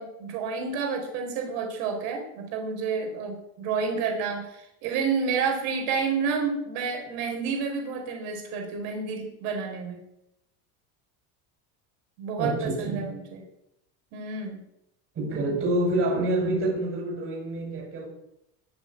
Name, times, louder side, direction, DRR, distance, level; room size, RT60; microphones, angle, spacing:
voice 1, 0.0-10.0 12.2-13.4 14.1-14.6, right 5 dB, 80° right, 2 dB, 4.6 m, -30 dB
voice 2, 12.4-13.1 15.1-18.1, right 1 dB, 30° right, 0 dB, 6.7 m, -27 dB
21.5 x 7.3 x 8.6 m, 0.83 s
cardioid pair, 165°, 40 cm